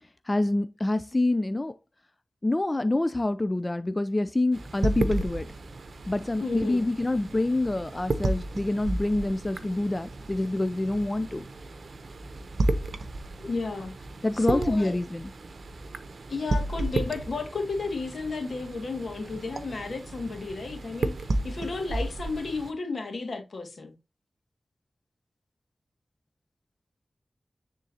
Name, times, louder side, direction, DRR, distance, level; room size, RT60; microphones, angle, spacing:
voice 1, 0.3-1.7 2.4-5.5 6.1-11.4 14.2-15.3, left 2 dB, 30° left, 0.4 m, -26 dB
sound 1, 4.5-22.7, right 2 dB, 75° right, 0.7 m, -33 dB
voice 2, 6.4-6.9 13.5-13.9 14.3-15.0 16.3-23.9, left 3 dB, 75° left, 1.9 m, -33 dB
9.7 x 3.7 x 2.7 m
cardioid pair, 50°, 0 cm